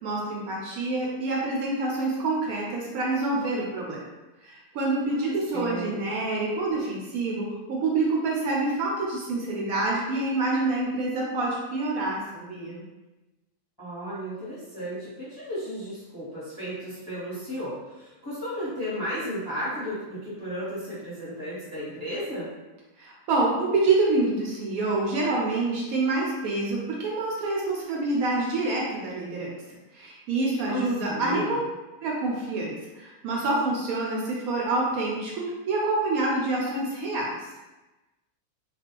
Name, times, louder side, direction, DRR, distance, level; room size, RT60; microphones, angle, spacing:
voice 1, 0.0-4.1 4.4-12.8 23.0-29.5 29.9-31.6 32.0-37.4, right 2 dB, 75° right, -3 dB, 1.0 m, -27 dB
voice 2, 5.1-6.0 13.8-22.5 30.6-31.5, equal, 20° left, -10 dB, 0.8 m, -34 dB
2.5 x 2.3 x 2.9 m, 1.1 s
omnidirectional pair, 1.6 m